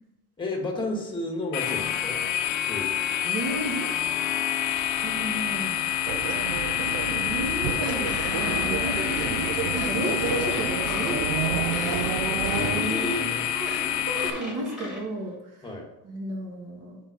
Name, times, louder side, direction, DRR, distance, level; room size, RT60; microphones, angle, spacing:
voice 1, 0.4-2.2 2.6-2.9 6.1-6.2 9.2-9.4 12.5-13.4 15.6-15.9, left 1 dB, 15° left, 1 dB, 1.4 m, -32 dB
sound 1, 1.5-14.3, left 10 dB, 60° left, 0.8 m, -28 dB
voice 2, 3.2-3.9 5.0-5.9 6.8-9.0 9.3-11.6 12.7-15.7 16.0-17.0, right 1 dB, 45° right, -1 dB, 2.0 m, -33 dB
sound 2, 6.1-12.8, right 9 dB, 70° right, 0.6 m, -31 dB
sound 3, 7.8-15.0, left 1 dB, 5° right, 1.8 m, -37 dB
5.6 x 4.6 x 5.8 m, 0.97 s
cardioid pair, 165°, 34 cm